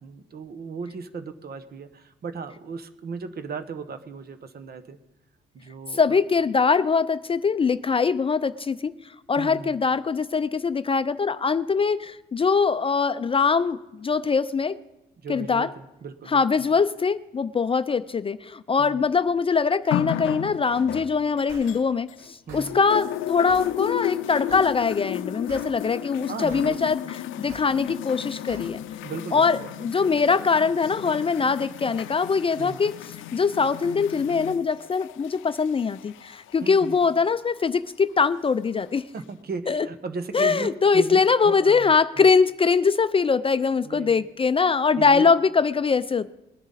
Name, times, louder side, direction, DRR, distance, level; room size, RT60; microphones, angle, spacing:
voice 1, 0.0-5.0 5.5-6.0 9.4-9.8 15.2-16.4 18.8-19.0 22.5-22.8 26.3-27.1 29.0-29.9 32.6-32.8 36.6-37.0 39.1-42.3 43.8-44.2 44.9-45.3, right 4 dB, 50° right, 10 dB, 1.2 m, -36 dB
voice 2, 5.9-8.9 9.3-14.8 15.3-15.7 16.3-27.0 27.4-28.8 29.3-32.9 33.3-39.1 39.7-39.9 40.3-46.3, left 5 dB, 30° left, 14 dB, 0.4 m, -22 dB
sound 1, 19.9-22.3 22.6-37.3 38.2-38.3, left 12 dB, 80° left, 0.5 m, -34 dB
sound 2, 21.5-21.7 22.5-22.7 23.5-23.7 24.5-24.7 25.5-25.7 26.5-26.7 27.5-27.7 28.5-28.7, right 3 dB, 85° right, 2.1 m, -43 dB
20.5 x 10.0 x 4.1 m, 0.95 s
cardioid pair, 90°, 20 cm